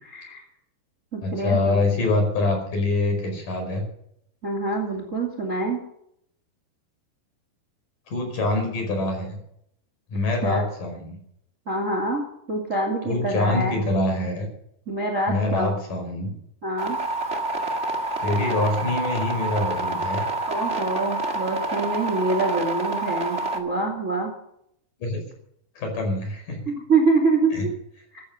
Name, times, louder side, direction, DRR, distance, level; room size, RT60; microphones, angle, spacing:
voice 1, 0.0-0.4 1.1-1.8 4.4-5.8 10.4-10.6 11.7-12.2 12.5-13.7 14.9-15.8 16.6-17.0 20.5-24.3 26.7-27.6 28.1-28.2, right 3 dB, 25° right, 3 dB, 2.3 m, -25 dB
voice 2, 1.2-3.9 8.1-9.4 10.1-11.2 13.0-14.5 15.3-16.3 18.2-20.2 25.0-25.2 25.8-26.6 27.5-27.6, left 2 dB, 50° left, 3 dB, 6.5 m, -25 dB
sound 1, 16.8-23.6, right 2 dB, 55° right, 0.7 m, -27 dB
14.5 x 14.5 x 5.3 m, 0.72 s
omnidirectional pair, 4.8 m